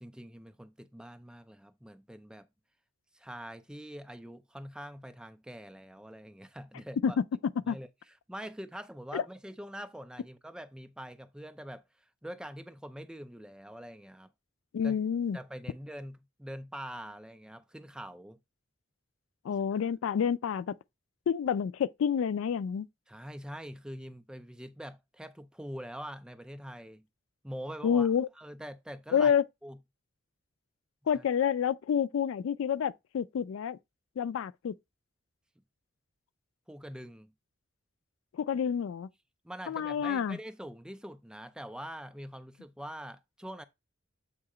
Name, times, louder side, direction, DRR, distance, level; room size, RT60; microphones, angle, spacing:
voice 1, 0.0-2.5 3.1-7.2 7.7-7.9 8.3-11.8 12.2-14.3 14.8-15.0 15.3-18.4 23.1-27.1 27.4-28.1 28.4-29.3 29.6-29.8 31.1-31.2 36.7-37.3 39.4-43.6, equal, 5° right, 0.3 m, -44 dB
voice 2, 14.7-15.4 19.4-20.8 21.3-22.9 27.8-28.3 29.1-29.4 31.1-33.8 34.2-34.7 38.3-39.1 39.7-40.4, left 7 dB, 80° left, 0.3 m, -28 dB
7.3 x 2.8 x 4.8 m
head